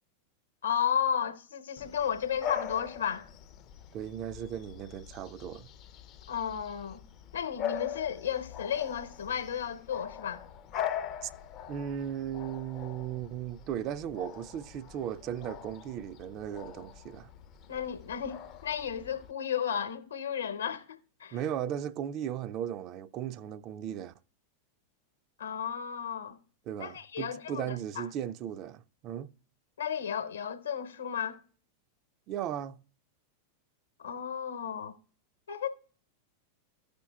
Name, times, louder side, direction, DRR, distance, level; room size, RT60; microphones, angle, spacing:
voice 1, 0.6-3.3 6.3-7.0 7.3-10.4 17.7-21.4 25.4-26.4 26.8-28.0 29.8-31.4 34.0-35.0 35.5-35.7, left 8 dB, 70° left, 0.8 m, -33 dB
Bark / Bird vocalization bird call bird song, 1.8-19.3, left 10 dB, 35° left, 0.5 m, -42 dB
voice 2, 3.9-5.7 11.2-11.3 11.7-17.3 21.3-24.1 26.7-29.3 32.3-32.8, right 10 dB, 35° right, 0.4 m, -36 dB
14.5 x 5.1 x 2.2 m
figure-of-eight pair, 90°, 0 cm